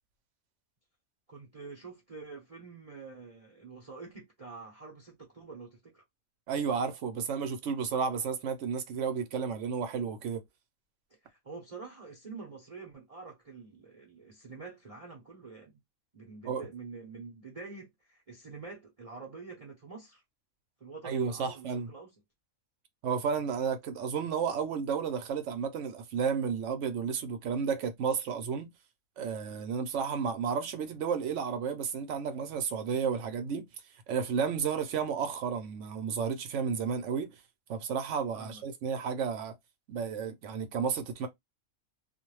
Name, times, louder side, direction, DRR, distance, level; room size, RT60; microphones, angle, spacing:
voice 1, 1.3-6.0 11.2-15.8 16.1-20.2 20.8-22.1 38.3-38.6, right 4 dB, 35° right, 0.7 m, -46 dB
voice 2, 6.5-10.4 16.5-16.7 21.0-21.9 23.0-28.7 29.2-33.7 34.1-37.3 37.7-39.5 39.9-41.3, right 6 dB, 65° right, 0.9 m, -32 dB
2.5 x 2.1 x 3.0 m
omnidirectional pair, 1.4 m